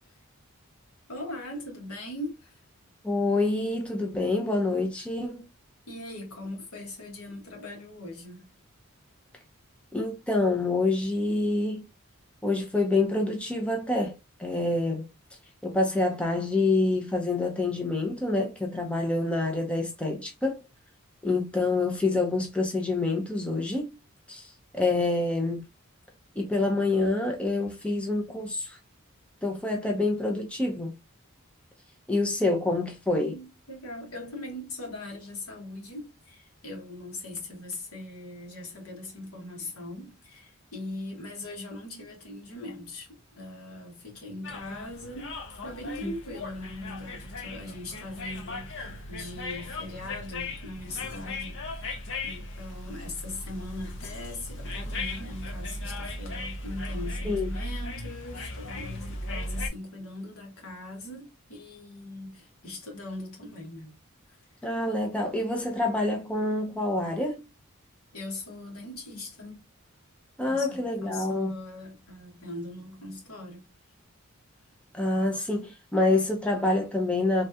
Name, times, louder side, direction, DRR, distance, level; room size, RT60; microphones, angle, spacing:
voice 1, 1.1-2.6 5.9-8.5 33.2-51.9 52.2-64.0 64.3-64.4 68.1-69.6 70.5-73.7, left 2 dB, 75° left, 1.3 m, -40 dB
voice 2, 3.0-5.5 9.9-11.8 12.4-15.0 15.6-20.6 21.2-23.9 24.3-25.6 26.4-28.8 29.4-30.9 32.1-33.3 46.0-46.1 57.3-57.5 64.6-67.4 70.4-71.5 74.9-77.5, left 2 dB, 5° left, 0.5 m, -27 dB
sound 1, 44.4-59.7, left 2 dB, 55° left, 0.7 m, -37 dB
3.2 x 2.3 x 2.6 m
head